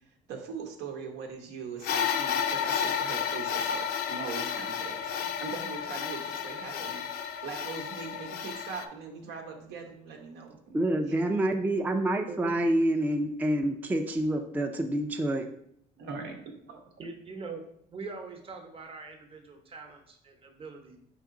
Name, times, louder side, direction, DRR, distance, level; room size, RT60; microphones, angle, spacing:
voice 1, 0.3-7.0 7.4-10.9 16.0-16.4 16.7-16.8, right 5 dB, 85° right, 3 dB, 0.9 m, -41 dB
sound 1, 1.8-8.9, left 8 dB, 65° left, 0.4 m, -32 dB
voice 2, 10.7-15.5, right 1 dB, 10° right, 5 dB, 0.3 m, -27 dB
voice 3, 12.3-12.6 17.0-17.6 17.9-21.0, right 4 dB, 35° right, 4 dB, 0.8 m, -42 dB
4.8 x 2.9 x 3.7 m, 0.70 s
cardioid pair, 110°, 17 cm